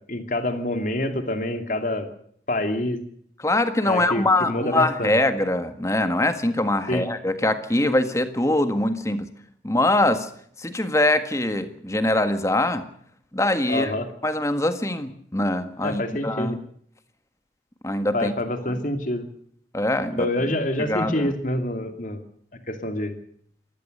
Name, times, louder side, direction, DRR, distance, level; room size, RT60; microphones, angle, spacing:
voice 1, 0.1-2.1 2.5-3.0 3.8-5.2 6.9-7.1 13.7-14.1 15.8-16.6 18.1-19.3 20.2-22.2 22.7-23.1, left 1 dB, 45° left, 7 dB, 2.7 m, -26 dB
voice 2, 3.4-9.3 9.6-10.3 10.6-12.9 13.3-13.9 14.2-16.6 17.8-18.3 18.7-18.8 19.7-20.3 20.9-21.3, left 1 dB, 15° left, 10 dB, 1.6 m, -23 dB
26.5 x 16.0 x 6.7 m, 0.64 s
head